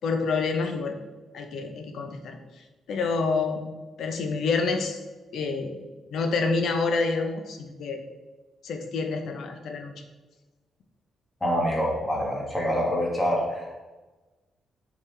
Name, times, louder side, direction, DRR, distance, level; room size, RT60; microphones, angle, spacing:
voice 1, 0.0-1.0 1.3-2.4 2.9-3.7 4.0-5.0 5.3-5.8 6.1-8.0 8.6-9.9, left 4 dB, 70° left, 5 dB, 0.8 m, -27 dB
voice 2, 11.4-13.7, equal, 10° left, -3 dB, 1.6 m, -26 dB
7.4 x 4.1 x 3.4 m, 1.2 s
cardioid pair, 135°, 0 cm